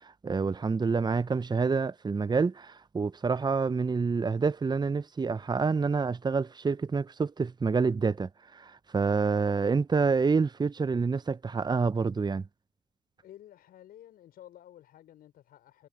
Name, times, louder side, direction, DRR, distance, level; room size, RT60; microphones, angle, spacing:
voice 1, 0.0-12.4, right 4 dB, 25° right, 0.9 m, -28 dB
voice 2, 13.2-15.9, left 12 dB, 60° left, 5.8 m, -52 dB
hypercardioid pair, 45°, 17 cm